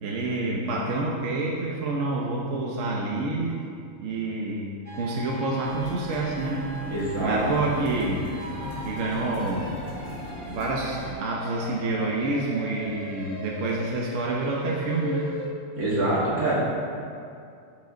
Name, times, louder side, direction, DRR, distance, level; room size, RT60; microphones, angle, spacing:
voice 1, 0.0-3.7 4.0-6.6 7.2-8.3 8.8-15.3, right 2 dB, 65° right, -2 dB, 1.2 m, -28 dB
sound 1, 4.9-15.5, equal, 45° right, 1.5 m, -39 dB
sound 2, 5.6-11.1, left 1 dB, 45° left, 2.2 m, -38 dB
voice 2, 6.9-7.4 15.8-16.5, right 2 dB, 85° right, -7 dB, 2.6 m, -25 dB
13.0 x 5.4 x 3.8 m, 2.4 s
omnidirectional pair, 1.5 m